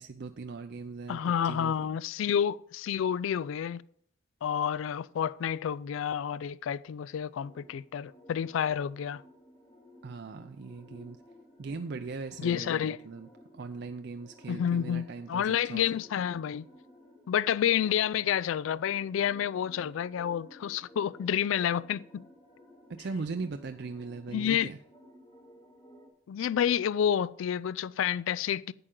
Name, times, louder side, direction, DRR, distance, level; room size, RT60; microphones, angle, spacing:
voice 1, 0.0-1.9 10.0-11.2 11.6-15.9 22.9-24.8, right 4 dB, 55° right, 0.4 m, -39 dB
voice 2, 1.1-3.8 4.4-9.2 12.4-13.0 14.5-16.7 17.3-22.2 24.3-24.7 26.3-28.7, left 9 dB, 70° left, 0.3 m, -29 dB
sound 1, 7.4-26.1, equal, 30° left, 2.2 m, -56 dB
11.0 x 8.8 x 3.8 m
head